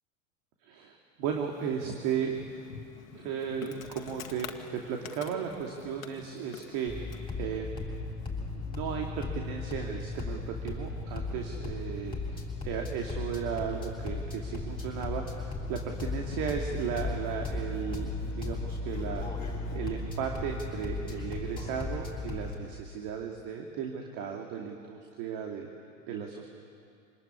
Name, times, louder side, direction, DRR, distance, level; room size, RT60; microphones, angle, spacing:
voice 1, 0.6-2.4 3.1-7.9 8.5-18.1 18.4-25.7 26.1-26.5, right 7 dB, 50° right, 2 dB, 2.8 m, -35 dB
Insect, 1.2-7.4, left 7 dB, 85° left, 1.8 m, -47 dB
sound 1, 6.9-22.5, left 3 dB, 10° left, 7.2 m, -36 dB
26.5 x 20.0 x 9.8 m, 2.4 s
hypercardioid pair, 95°, 40 cm